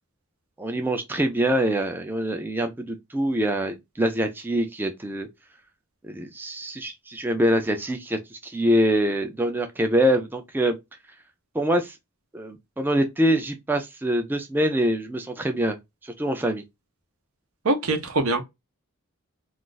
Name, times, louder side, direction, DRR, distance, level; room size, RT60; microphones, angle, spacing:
voice 1, 0.6-5.3 6.0-10.8 11.5-12.0 12.3-15.8 16.0-16.6, equal, 10° right, 0.3 m, -24 dB
voice 2, 17.6-18.4, right 2 dB, 80° right, 0.8 m, -23 dB
2.4 x 2.4 x 3.8 m
head